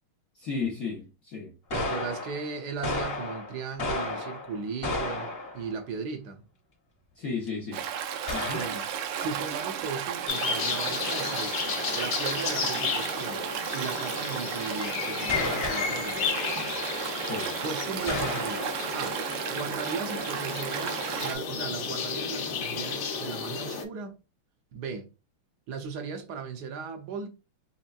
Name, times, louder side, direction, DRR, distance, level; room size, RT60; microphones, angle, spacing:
voice 1, 0.3-1.6 7.2-7.9 8.3-8.7 17.2-17.5, left 4 dB, 90° left, 0.7 m, -34 dB
sound 1, 1.7-5.8 7.5-7.6 8.3-8.9 15.3-16.3 18.1-18.9, left 2 dB, 45° left, 0.8 m, -33 dB
voice 2, 1.7-6.5 8.5-8.9 9.2-16.3 17.6-19.2 19.5-24.2 24.7-25.1 25.7-27.3, right 5 dB, 70° right, 1.0 m, -37 dB
Stream, 7.7-21.4, right 8 dB, 85° right, 1.5 m, -34 dB
sound 2, 10.3-23.8, left 6 dB, 65° left, 1.1 m, -33 dB
4.4 x 3.1 x 2.3 m
omnidirectional pair, 2.3 m